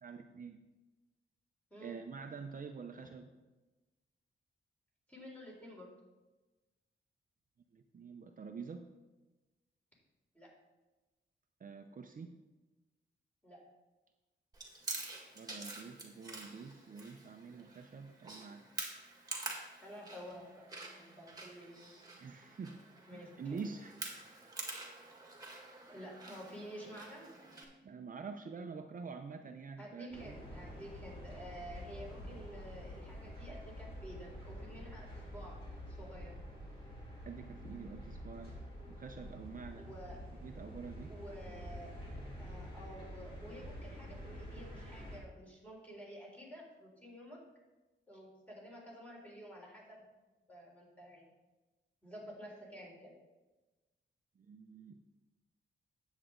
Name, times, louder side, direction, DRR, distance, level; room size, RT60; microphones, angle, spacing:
voice 1, 0.0-0.6 1.8-3.3 7.7-8.9 11.6-12.4 15.4-18.6 22.2-22.8 23.1-24.0 27.8-30.4 37.2-38.6 38.9-39.9 40.4-41.1 54.4-55.0, right 5 dB, 45° right, 5 dB, 0.6 m, -47 dB
voice 2, 5.1-5.9 10.3-10.5 13.4-13.6 19.8-20.5 21.0-21.9 23.1-23.6 25.9-27.3 29.8-35.6 35.9-36.3 39.8-40.2 41.1-41.9 42.4-47.4 48.1-50.1 50.5-51.3 52.0-53.1, equal, 5° left, -3 dB, 3.7 m, -51 dB
Chewing mastication, 14.5-27.6, right 2 dB, 20° right, 1.9 m, -47 dB
sound 1, 30.1-45.2, equal, 30° left, 3.5 m, -48 dB
10.0 x 8.1 x 3.8 m, 1.1 s
wide cardioid pair, 110°, 20 cm